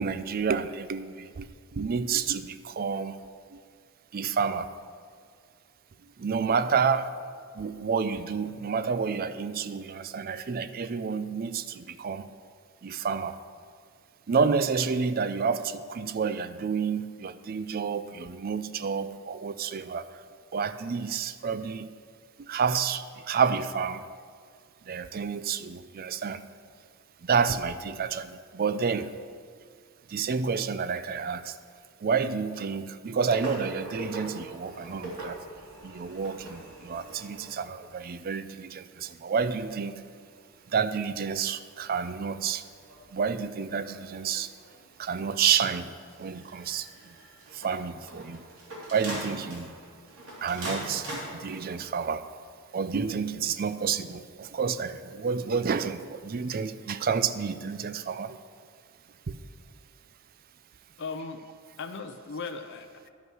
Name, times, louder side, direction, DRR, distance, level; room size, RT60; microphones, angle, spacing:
voice 1, 0.0-3.2 3.5-3.6 4.1-4.7 6.2-7.1 7.5-12.2 12.8-13.4 14.3-20.1 20.5-21.9 22.4-24.0 24.9-26.4 27.2-29.1 30.1-31.5 32.0-35.4 35.8-40.0 40.7-42.7 43.1-44.5 45.0-45.9 46.2-47.1 47.5-48.4 48.9-49.7 50.4-52.3 52.7-58.4 59.3-59.4, right 6 dB, 45° right, 13 dB, 0.4 m, -29 dB
sound 1, 33.2-38.4 39.4-52.1 52.7-52.8, right 1 dB, 70° right, 2.7 m, -43 dB
voice 2, 61.0-61.4 61.8-63.1, left 4 dB, 55° left, 7 dB, 0.6 m, -37 dB
11.5 x 5.4 x 6.2 m, 2.2 s
head